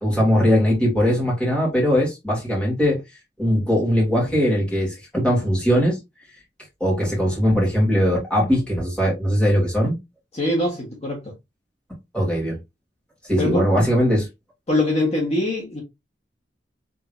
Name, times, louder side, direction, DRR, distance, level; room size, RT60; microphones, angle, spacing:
voice 1, 0.0-3.0 3.4-6.0 6.8-10.0 12.1-12.6 13.2-14.3, equal, 5° left, 2.3 m, -20 dB
voice 2, 10.3-11.3 13.4-13.7 14.7-15.8, left 1 dB, 35° left, 1.5 m, -23 dB
5.0 x 3.7 x 2.6 m
head